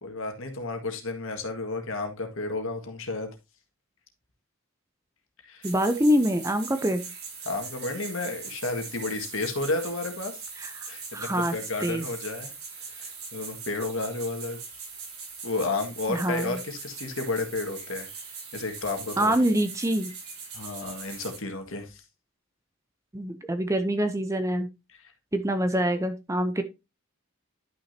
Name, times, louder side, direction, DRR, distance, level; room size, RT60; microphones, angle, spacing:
voice 1, 0.0-3.3 5.5-5.7 7.4-10.4 10.9-12.5 12.8-14.6 15.4-18.1 18.5-19.3 20.5-22.0, left 2 dB, 65° left, 1.8 m, -32 dB
voice 2, 5.6-7.1 10.6-10.9 11.1-11.5 11.8-12.1 16.1-16.6 19.2-20.1 23.1-24.7 25.3-26.6, equal, 15° right, 0.6 m, -25 dB
sound 1, 5.6-21.4, right 5 dB, 80° right, 5.2 m, -41 dB
11.0 x 6.3 x 2.8 m
head